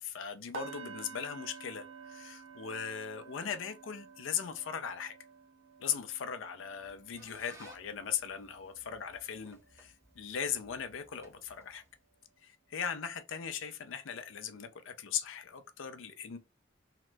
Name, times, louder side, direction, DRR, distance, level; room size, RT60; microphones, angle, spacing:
voice 1, 0.0-5.2 5.8-11.8 12.4-16.4, left 8 dB, 85° left, 0.4 m, -39 dB
sound 1, 0.5-10.5 10.8-11.1 11.5-11.7, right 6 dB, 85° right, 0.6 m, -52 dB
Squeak, 6.7-12.1, equal, 15° right, 0.7 m, -60 dB
2.8 x 2.0 x 3.2 m
head